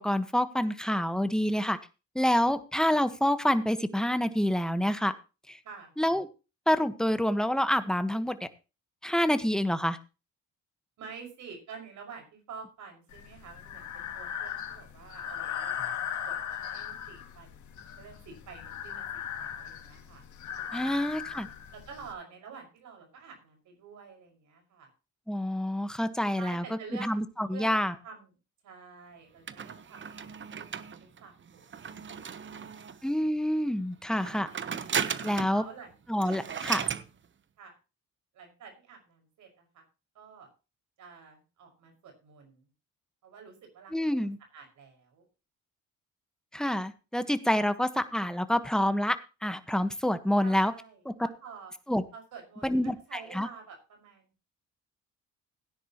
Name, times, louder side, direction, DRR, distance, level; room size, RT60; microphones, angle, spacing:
voice 1, 0.0-1.8 2.1-5.1 5.5-5.6 6.0-6.3 6.7-8.5 9.0-10.0 20.7-21.5 25.3-26.6 27.0-27.9 33.0-34.5 35.2-35.6 36.1-36.9 43.9-44.4 46.5-49.2 49.4-50.7 51.0-51.1 51.9-52.0 52.6-53.5, equal, ahead, 10 dB, 1.4 m, -27 dB
voice 2, 11.0-15.9 16.2-16.4 16.7-17.6 18.0-20.2 20.7-21.4 21.7-24.9 26.4-27.1 27.5-27.7 28.0-28.3 28.6-31.7 32.2-32.9 34.5-35.1 35.5-35.9 37.6-37.7 38.3-39.8 40.1-40.5 41.0-42.6 43.2-45.3 47.6-47.7 50.4-51.7 52.1-52.7 53.1-54.3, right 6 dB, 75° right, 3 dB, 5.7 m, -49 dB
Breathing, 13.1-22.1, left 9 dB, 70° left, 2.4 m, -38 dB
sound 1, 29.5-33.1 34.1-35.6 35.9-36.0 36.2-37.1, right 7 dB, 40° right, 1.0 m, -35 dB
17.0 x 10.0 x 3.0 m, 0.31 s
cardioid pair, 90°, 30 cm